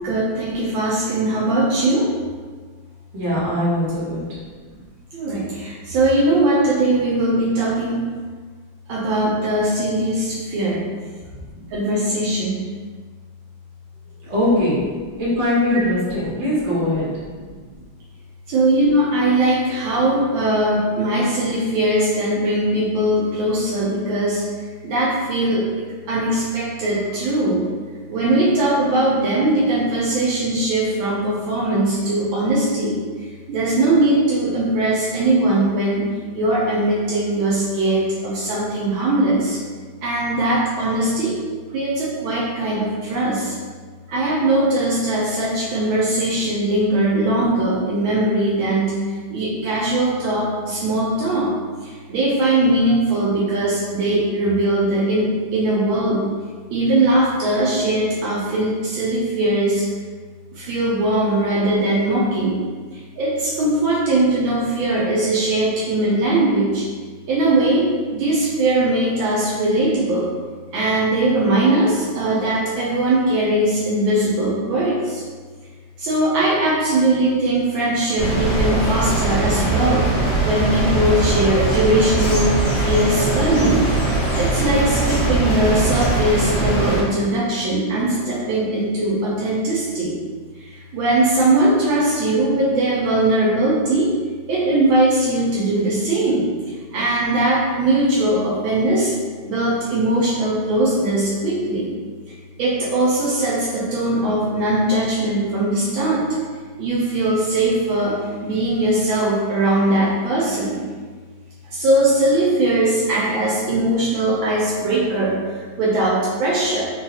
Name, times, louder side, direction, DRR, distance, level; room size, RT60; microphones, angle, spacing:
voice 1, 0.0-2.1 5.1-8.0 8.9-10.8 11.5-12.6 18.5-24.4 24.8-25.6 26.1-27.6 28.1-33.0 33.5-39.6 40.0-41.3 41.7-43.6 44.1-49.0 49.3-51.5 51.8-56.2 56.7-59.8 60.5-62.6 63.2-66.8 67.3-70.3 70.7-75.2 76.0-83.9 84.3-90.2 90.9-94.1 94.5-99.1 99.4-101.9 102.6-106.3 106.8-108.2 108.4-110.8 111.7-115.4 115.8-116.8, right 1 dB, 75° right, -6 dB, 1.3 m, -20 dB
voice 2, 3.1-4.4 14.3-17.2, left 1 dB, 40° right, -8 dB, 1.2 m, -21 dB
sound 1, 78.2-87.0, right 2 dB, 65° left, 1.5 m, -21 dB
3.8 x 2.3 x 2.7 m, 1.5 s
omnidirectional pair, 2.3 m